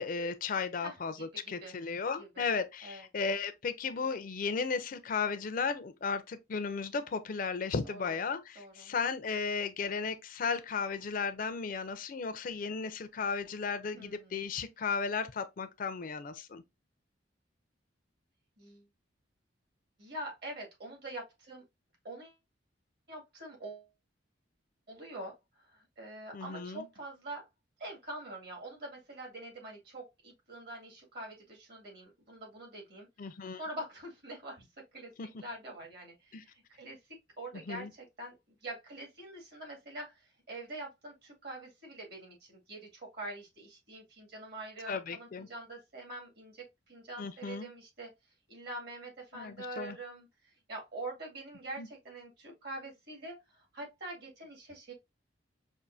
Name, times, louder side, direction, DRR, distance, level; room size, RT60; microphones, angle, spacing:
voice 1, 0.0-16.6 26.3-26.9 33.2-33.6 35.2-35.3 36.3-36.4 37.7-37.9 44.9-45.5 47.2-47.7 49.3-50.0 51.8-51.9, left 5 dB, 45° left, 0.4 m, -35 dB
voice 2, 0.8-1.8 2.2-2.5 2.8-3.1 7.8-8.2 8.6-8.9 13.9-14.4 18.6-18.9 20.0-21.6 22.0-22.4 23.1-23.9 24.9-27.5 27.8-33.1 33.5-34.7 34.9-35.1 35.4-38.4 38.6-48.1 48.5-50.3 50.7-54.9, right 1 dB, 60° right, 2.0 m, -45 dB
5.4 x 2.6 x 2.5 m
head